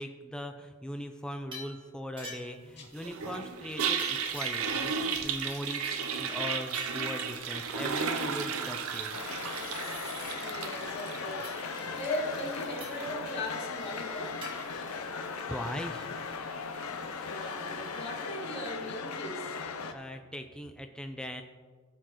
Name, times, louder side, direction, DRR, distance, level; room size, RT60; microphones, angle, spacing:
voice 1, 0.0-5.8 6.2-9.2 15.5-16.1 19.9-21.4, left 1 dB, 5° left, 5 dB, 0.5 m, -40 dB
sound 1, 1.5-1.8 2.2-2.7 4.0-4.9 5.1-6.1 6.7-7.1 8.8-10.4 11.4-11.6 12.8-13.1 14.4-14.6, equal, 25° right, 1.8 m, -45 dB
Toilet flush, 3.0-18.2, right 6 dB, 80° right, 0.7 m, -36 dB
sound 2, 9.1-19.9, left 5 dB, 85° left, 0.7 m, -38 dB
voice 2, 10.4-14.4 17.2-19.5, left 1 dB, 55° left, -4 dB, 2.3 m, -38 dB
15.0 x 6.9 x 3.1 m, 1.4 s
head